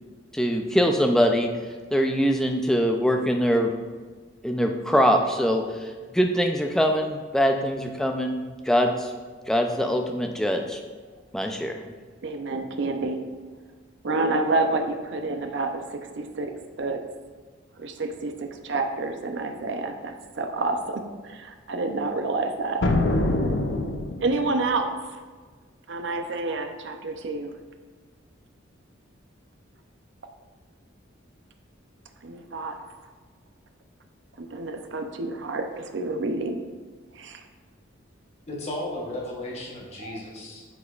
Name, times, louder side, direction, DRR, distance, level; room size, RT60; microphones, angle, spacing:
voice 1, 0.3-1.5 1.9-3.8 4.4-9.1 9.5-10.8 11.3-11.8, equal, 5° left, 3 dB, 0.3 m, -23 dB
voice 2, 12.2-13.2 14.0-17.0 17.8-22.8 24.2-24.9 25.9-27.5 32.2-32.8 34.4-36.6 37.1-37.4 40.0-40.1, right 3 dB, 65° right, 6 dB, 0.5 m, -29 dB
sound 1, 22.8-24.6, left 2 dB, 65° left, 0.5 m, -24 dB
voice 3, 38.5-40.7, left 1 dB, 30° left, -3 dB, 1.0 m, -34 dB
7.9 x 5.1 x 2.4 m, 1.5 s
head